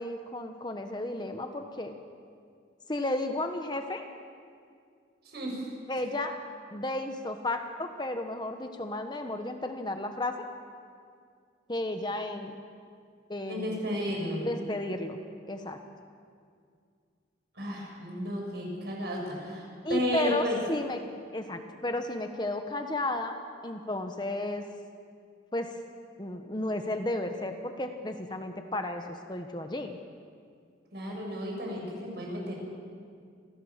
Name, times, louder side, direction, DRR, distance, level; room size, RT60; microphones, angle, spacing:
voice 1, 0.0-1.9 2.9-4.1 5.9-6.3 6.7-10.5 11.7-12.6 13.3-13.8 14.4-15.2 15.5-15.8 19.8-21.0 21.3-23.4 23.6-24.6 25.5-25.8 26.2-30.0, left 1 dB, 25° left, 5 dB, 1.1 m, -33 dB
voice 2, 5.2-5.6 13.5-14.5 17.5-20.6 30.9-32.5, equal, 60° right, -1 dB, 6.6 m, -33 dB
27.0 x 16.0 x 7.4 m, 2.3 s
head